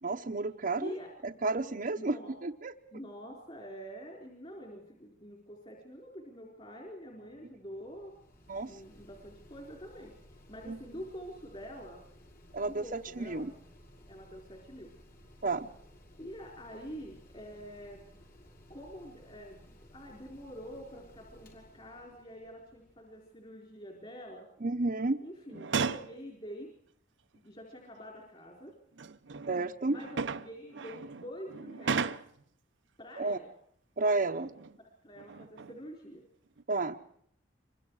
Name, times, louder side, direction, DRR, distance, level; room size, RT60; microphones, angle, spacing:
voice 1, 0.0-0.9 1.2-3.0 8.5-8.8 10.7-10.8 12.5-13.5 15.4-15.7 24.6-25.2 29.5-30.0 33.2-33.4 34.0-34.5 36.7-37.0, right 3 dB, 50° right, 1 dB, 0.9 m, -32 dB
voice 2, 2.0-2.4 2.9-8.1 8.6-12.0 12.6-13.5 14.1-14.9 16.2-18.0 18.7-24.5 25.2-26.7 27.3-28.7 29.9-32.1 33.0-33.5 34.8-36.2, equal, 30° left, 0 dB, 4.4 m, -46 dB
Mechanical fan, 7.1-23.4, equal, 55° left, 6.6 m, -57 dB
sound 1, 25.5-26.2 27.3-27.4 28.7-32.5 34.3-34.8 35.2-35.9 36.5-36.6, right 5 dB, 75° right, 0.8 m, -36 dB
26.0 x 24.0 x 4.8 m, 0.69 s
head